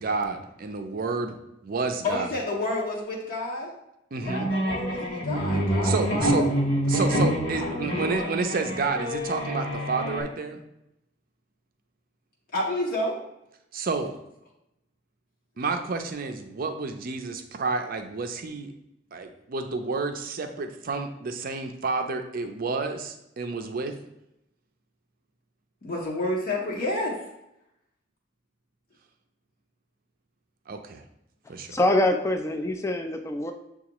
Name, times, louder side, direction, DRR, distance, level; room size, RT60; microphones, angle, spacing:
voice 1, 0.0-1.4 1.6-2.3 4.1-4.5 5.8-6.5 6.9-10.6 13.7-14.2 15.6-18.7 19.1-23.9 30.7-31.0 31.5-31.7, right 4 dB, 50° right, 6 dB, 0.5 m, -30 dB
voice 2, 2.0-3.7 4.2-6.6 6.9-7.0 7.5-8.3 12.5-13.2 25.8-27.2, left 2 dB, 50° left, -4 dB, 0.7 m, -30 dB
sound 1, 4.2-10.2, equal, 75° left, 1.2 m, -27 dB
voice 3, 31.7-33.5, left 1 dB, 15° left, 4 dB, 0.3 m, -24 dB
6.8 x 2.4 x 2.9 m, 0.84 s
head